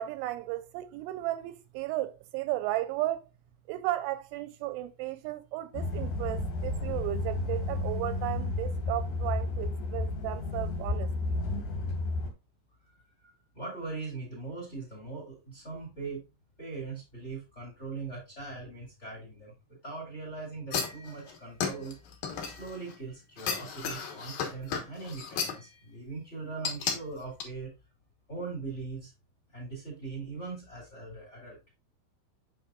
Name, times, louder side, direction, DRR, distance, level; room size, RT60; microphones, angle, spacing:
voice 1, 0.0-3.2 3.7-11.4, right 15 dB, 85° right, 2.8 m, -34 dB
sound 1, 5.7-12.3, left 2 dB, 60° left, 2.1 m, -32 dB
voice 2, 12.9-16.2 16.6-22.0 22.4-27.7 28.3-29.1 29.5-31.6, right 3 dB, 20° left, 1.8 m, -41 dB
sound 2, 20.7-23.0 23.4-25.7 26.6-27.0 27.4-27.5, left 6 dB, 80° left, 1.7 m, -33 dB
7.7 x 5.7 x 2.4 m
omnidirectional pair, 5.6 m